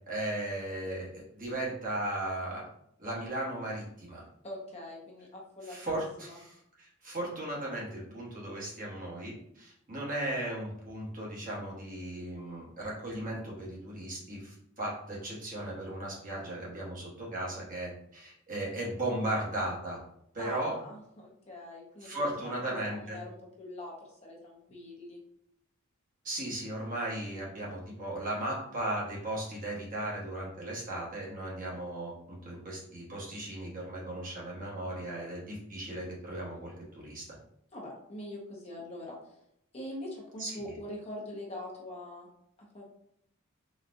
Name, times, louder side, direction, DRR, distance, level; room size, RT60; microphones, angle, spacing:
voice 1, 0.0-2.6 3.0-4.2 5.7-20.0 20.3-20.7 22.0-23.2 26.2-37.2 40.4-40.6, right 1 dB, 40° right, -5 dB, 1.2 m, -36 dB
voice 2, 4.4-6.4 20.4-25.2 37.7-39.2 39.7-42.3 42.6-42.8, left 1 dB, 30° left, -2 dB, 0.7 m, -43 dB
4.0 x 2.3 x 2.5 m, 0.74 s
head